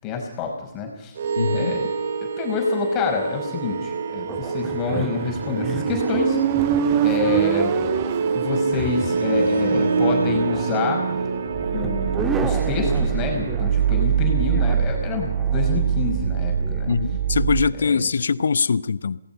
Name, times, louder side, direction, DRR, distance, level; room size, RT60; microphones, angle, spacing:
voice 1, 0.0-1.1 1.5-1.9 2.2-6.4 7.0-7.7 8.3-11.0 11.7-16.9 17.8-18.1, left 4 dB, 20° left, 5.4 m, -27 dB
sound 1, 1.2-17.7, right 6 dB, 50° right, 2.8 m, -24 dB
voice 2, 1.4-1.7 16.9-19.2, left 5 dB, 60° left, 0.9 m, -22 dB
sound 2, 4.3-17.0, right 4 dB, 10° right, 1.9 m, -35 dB
Motorcycle, 5.4-9.1, right 12 dB, 25° right, 1.0 m, -24 dB
28.0 x 19.0 x 5.6 m
figure-of-eight pair, 140°, 0 cm